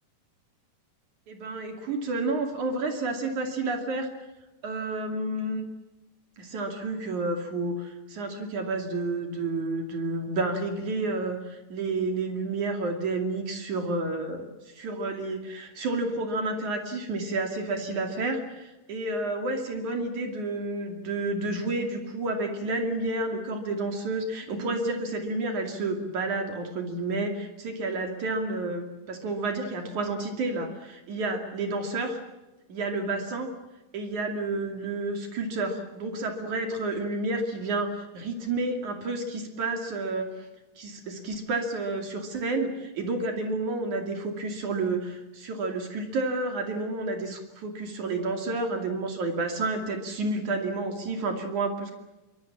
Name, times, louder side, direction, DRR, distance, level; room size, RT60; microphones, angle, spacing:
voice 1, 1.3-4.1 4.6-5.6 6.4-32.2 32.7-33.5 33.9-40.5 40.8-51.9, right 2 dB, 65° right, 4 dB, 4.0 m, -30 dB
25.5 x 24.5 x 7.5 m, 1.1 s
omnidirectional pair, 3.7 m